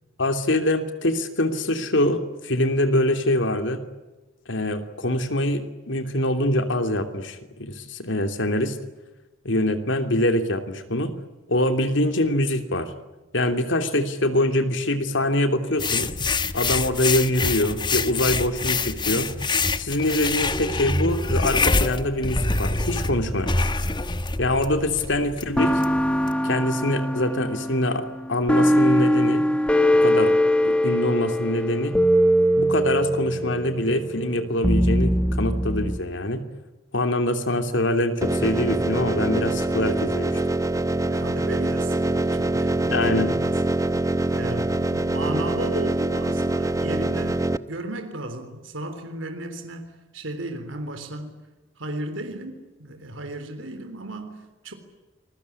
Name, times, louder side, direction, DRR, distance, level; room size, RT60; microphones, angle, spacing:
voice 1, 0.2-3.8 4.5-8.8 9.4-11.1 11.5-12.9 13.3-16.1 16.5-19.3 19.8-23.5 24.4-25.7 26.4-29.4 30.0-30.3 30.6-32.0 32.5-36.4 36.9-40.4 42.9-43.3, left 1 dB, 65° left, 8 dB, 3.0 m, -24 dB
sound 1, 15.8-26.3, left 3 dB, 25° left, 1.2 m, -26 dB
sound 2, 20.5-21.7 22.4-25.0 25.6-36.0, equal, 5° left, 1.3 m, -23 dB
sound 3, 38.2-47.6, right 2 dB, 15° right, 0.9 m, -24 dB
voice 2, 41.1-43.9 44.3-51.4 51.8-54.7, right 1 dB, 75° right, 7 dB, 3.7 m, -35 dB
27.5 x 21.5 x 9.8 m, 1.1 s
head